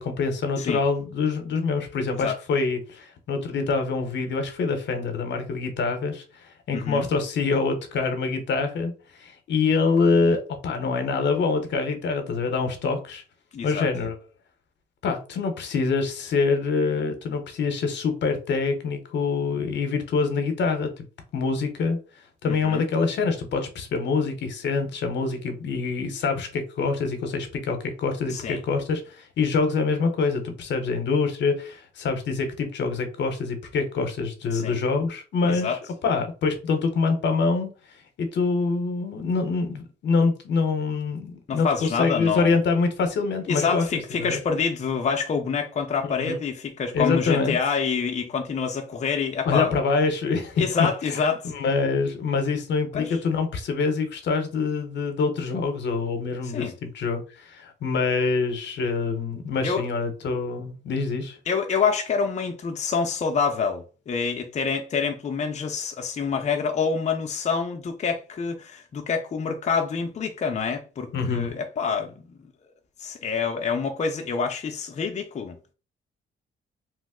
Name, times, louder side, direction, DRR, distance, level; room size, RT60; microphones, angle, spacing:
voice 1, 0.0-8.9 9.2-13.2 13.6-14.2 15.0-21.0 21.3-22.0 22.4-37.7 38.2-44.4 46.0-46.4 46.9-47.6 49.4-51.2 51.4-61.4 71.1-71.5, left 4 dB, 65° left, 0.8 m, -25 dB
voice 2, 6.7-7.1 13.5-13.9 22.4-22.9 28.3-28.6 34.5-34.8 35.4-35.8 41.5-42.6 43.5-49.7 50.6-51.5 52.9-53.2 56.4-56.7 59.6-59.8 61.5-72.1 73.0-75.6, left 5 dB, 35° left, 0.5 m, -27 dB
3.0 x 2.0 x 3.5 m
cardioid pair, 90°, 20 cm